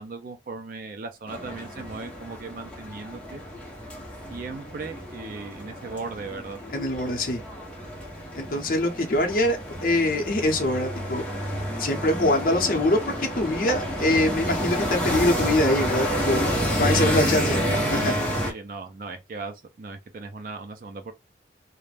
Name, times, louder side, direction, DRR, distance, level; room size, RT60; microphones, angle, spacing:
voice 1, 0.0-3.4 4.3-6.6 16.9-21.1, right 4 dB, 50° right, 0.4 m, -37 dB
sound 1, 1.3-18.5, equal, 5° left, 0.7 m, -29 dB
voice 2, 6.7-7.4 8.3-11.3 11.8-16.4 16.8-17.6 17.9-18.1, left 1 dB, 50° left, 0.6 m, -24 dB
2.4 x 2.1 x 3.2 m
head